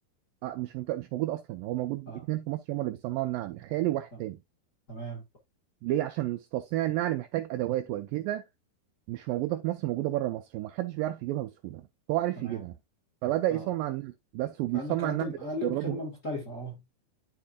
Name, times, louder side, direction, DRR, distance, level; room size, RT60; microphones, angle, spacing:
voice 1, 0.4-4.4 5.8-8.4 9.1-11.8 12.1-12.7 13.2-16.0, right 15 dB, 90° right, 2.0 m, -31 dB
voice 2, 4.9-5.2 12.4-12.6 13.5-13.7 14.7-16.8, left 1 dB, 40° left, 1.1 m, -37 dB
12.5 x 4.5 x 2.4 m
omnidirectional pair, 4.6 m